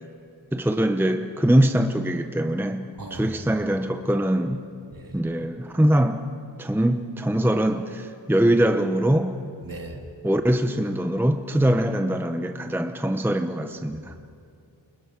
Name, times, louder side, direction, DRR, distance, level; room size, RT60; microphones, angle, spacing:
voice 1, 0.5-4.6 5.1-6.2 6.6-9.4 10.2-14.1, right 1 dB, 5° right, 7 dB, 0.9 m, -23 dB
voice 2, 3.0-3.3 4.9-5.2 9.6-10.0 13.9-14.0, right 1 dB, 45° right, 2 dB, 3.0 m, -38 dB
29.5 x 24.0 x 6.1 m, 2.5 s
wide cardioid pair, 75°, 46 cm